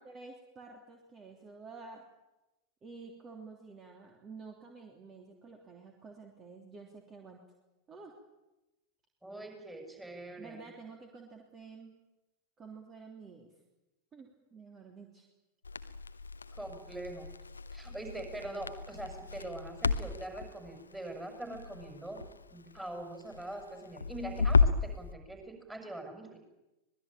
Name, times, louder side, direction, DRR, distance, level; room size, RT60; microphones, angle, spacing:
voice 1, 0.1-2.1 2.8-7.4 7.9-8.1 10.4-11.9 12.6-13.5 14.1-15.3, right 4 dB, 25° right, 2 dB, 3.3 m, -50 dB
voice 2, 9.2-10.6 16.6-17.3 17.7-22.2 22.5-26.4, right 1 dB, 5° right, 4 dB, 6.7 m, -43 dB
Crackle, 15.6-24.9, left 4 dB, 75° left, 1.0 m, -33 dB
25.0 x 20.0 x 9.0 m, 0.99 s
figure-of-eight pair, 90°, 0 cm